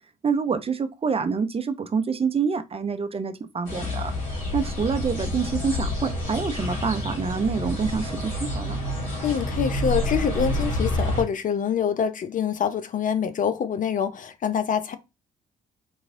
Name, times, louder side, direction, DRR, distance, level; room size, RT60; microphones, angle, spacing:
voice 1, 0.2-4.1 4.5-8.8, right 5 dB, 30° right, 0.6 m, -27 dB
sound 1, 3.7-11.2, left 1 dB, 65° left, 2.4 m, -28 dB
voice 2, 9.2-15.0, left 7 dB, 45° left, 0.6 m, -25 dB
3.9 x 2.9 x 2.6 m
hypercardioid pair, 50°, 19 cm